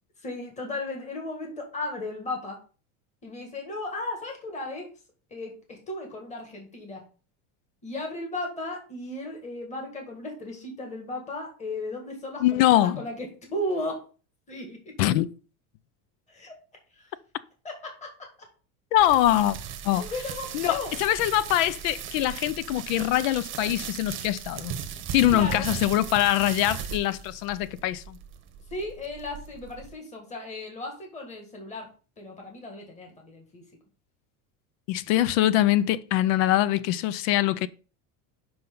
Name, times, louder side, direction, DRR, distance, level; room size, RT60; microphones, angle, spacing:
voice 1, 0.2-2.6 3.2-4.9 5.3-7.0 7.8-14.0 14.5-14.8 16.3-16.5 16.9-17.1 17.6-17.7 18.0-18.1 20.0-20.9 25.3-25.7 28.7-31.9 32.2-33.6, left 2 dB, 15° left, 1.8 m, -35 dB
voice 2, 12.4-13.0 15.0-15.3 18.9-19.6 19.8-20.1 20.5-24.8 25.1-28.2 34.9-37.7, left 13 dB, 70° left, 0.6 m, -23 dB
sound 1, 19.0-29.9, right 8 dB, 30° right, 0.9 m, -38 dB
6.0 x 5.5 x 3.8 m
cardioid pair, 155°, 40 cm